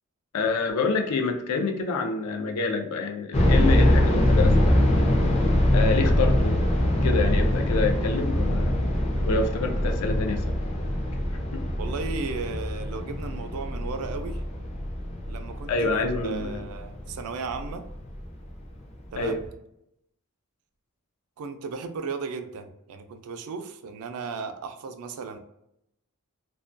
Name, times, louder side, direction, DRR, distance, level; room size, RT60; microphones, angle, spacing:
voice 1, 0.3-4.9 5.7-6.6 7.0-8.8 9.3-10.5 11.5-11.6 15.7-16.6 19.2-19.4, left 3 dB, 85° left, 4 dB, 0.4 m, -27 dB
sound 1, 3.3-18.2 18.5-18.6 19.2-19.5, left 1 dB, 30° left, 0.4 m, -23 dB
voice 2, 11.8-14.4 15.3-15.9 16.2-17.9 19.1-19.4 21.4-25.4, right 4 dB, 75° right, 7 dB, 0.3 m, -35 dB
2.3 x 2.2 x 2.4 m, 0.80 s
head